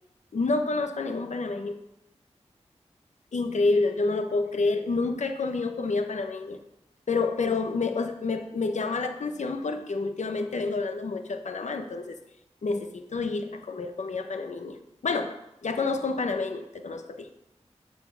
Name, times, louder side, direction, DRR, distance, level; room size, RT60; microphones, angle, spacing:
voice 1, 0.3-1.8 3.3-6.6 7.1-12.2 12.6-17.3, left 3 dB, 85° left, 7 dB, 0.8 m, -28 dB
8.1 x 4.3 x 5.8 m, 0.85 s
wide cardioid pair, 55°, 12 cm